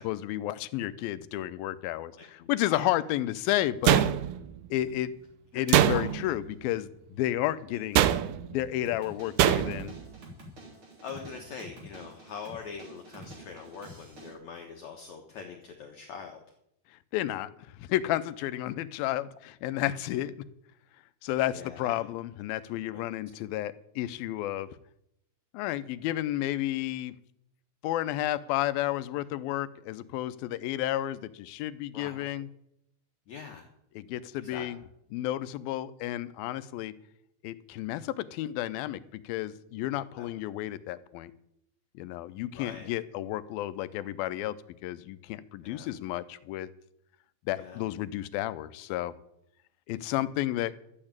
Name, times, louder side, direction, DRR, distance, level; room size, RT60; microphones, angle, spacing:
voice 1, 0.0-4.0 4.7-5.1 5.5-8.0 8.5-10.0 17.1-20.4 21.2-24.7 25.5-27.2 27.8-32.5 34.0-34.8 35.1-36.9 37.4-41.3 42.0-44.6 44.8-46.7 47.5-49.1 49.9-50.7, left 14 dB, 80° left, 15 dB, 2.5 m, -32 dB
voice 2, 2.2-2.9 5.5-5.6 5.9-6.1 11.0-16.4 21.5-21.9 22.9-23.0 31.9-32.3 33.3-33.6 34.4-34.7 40.2-40.3 42.5-42.9 45.6-45.9 47.5-47.9, left 6 dB, 60° left, 2 dB, 2.2 m, -43 dB
sound 1, 3.8-4.6 5.7-6.4 7.9-8.5 9.4-9.9, right 12 dB, 85° right, 1.7 m, -23 dB
sound 2, 8.9-14.3, right 1 dB, 35° right, 3.8 m, -48 dB
12.5 x 8.8 x 8.8 m, 0.77 s
omnidirectional pair, 4.3 m